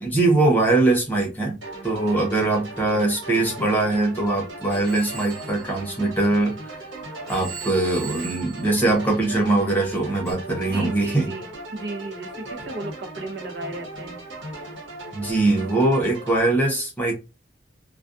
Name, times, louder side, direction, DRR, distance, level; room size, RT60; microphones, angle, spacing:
voice 1, 0.0-1.6 1.8-6.5 7.3-11.3 15.1-17.1, right 2 dB, 10° left, 0.8 m, -22 dB
sound 1, 1.6-16.4, right 2 dB, 90° right, 1.4 m, -38 dB
voice 2, 2.0-2.5 10.7-14.2, right 2 dB, 60° right, 0.7 m, -35 dB
Telephone, 4.7-6.8 7.3-9.6 10.3-10.4, right 6 dB, 15° right, 0.8 m, -40 dB
2.3 x 2.2 x 2.5 m
head